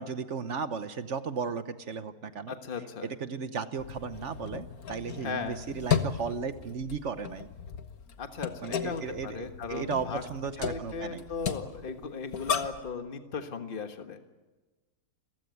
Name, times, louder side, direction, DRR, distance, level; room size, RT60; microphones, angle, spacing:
voice 1, 0.0-2.5 3.0-7.5 8.6-11.3, right 5 dB, 55° right, 12 dB, 1.2 m, -35 dB
voice 2, 2.5-3.1 5.2-5.6 8.2-10.2 10.6-14.2, left 5 dB, 35° left, 7 dB, 1.6 m, -37 dB
sound 1, 3.8-12.9, left 7 dB, 70° left, 1.7 m, -35 dB
29.0 x 15.5 x 9.4 m, 1.3 s
omnidirectional pair, 1.6 m